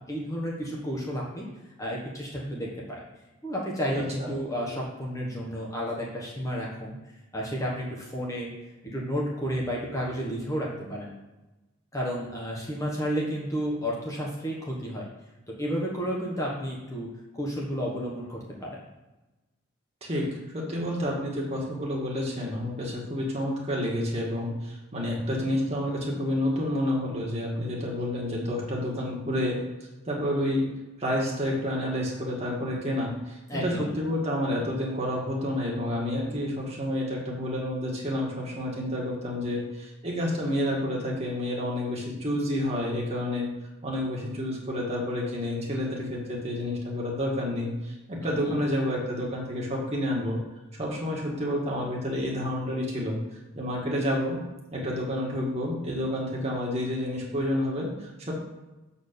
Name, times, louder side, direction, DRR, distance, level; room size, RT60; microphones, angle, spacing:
voice 1, 0.0-1.5 1.8-3.0 3.4-7.0 7.3-8.5 8.8-11.1 11.9-15.0 15.5-17.1 17.4-18.7 33.5-33.9 48.2-48.6, equal, 15° left, -4 dB, 1.1 m, -31 dB
voice 2, 3.9-4.3 20.0-29.6 30.1-30.7 31.0-43.5 43.8-50.4 50.7-53.2 53.5-54.4 54.7-58.3, left 1 dB, 30° right, -4 dB, 1.8 m, -29 dB
7.2 x 4.3 x 6.8 m, 1.1 s
head